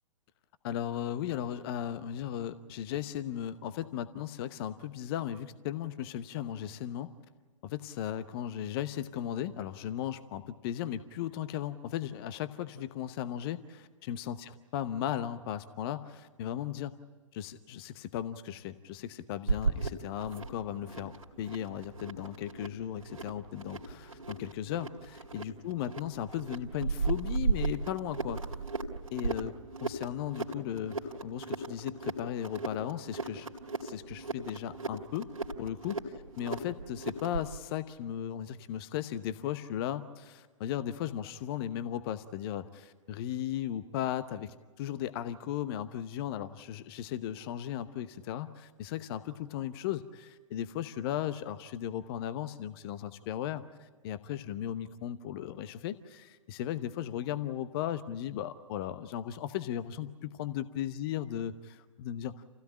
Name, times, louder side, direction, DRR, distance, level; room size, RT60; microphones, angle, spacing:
voice 1, 0.6-7.1 7.6-17.0 17.3-28.4 29.1-29.5 29.8-33.5 33.8-35.3 35.6-36.0 36.4-62.6, left 11 dB, 45° left, 12 dB, 0.9 m, -36 dB
sound 1, 19.5-37.5, right 4 dB, 90° right, 2.5 m, -36 dB
28.0 x 16.5 x 8.9 m, 1.5 s
figure-of-eight pair, 110°, 17 cm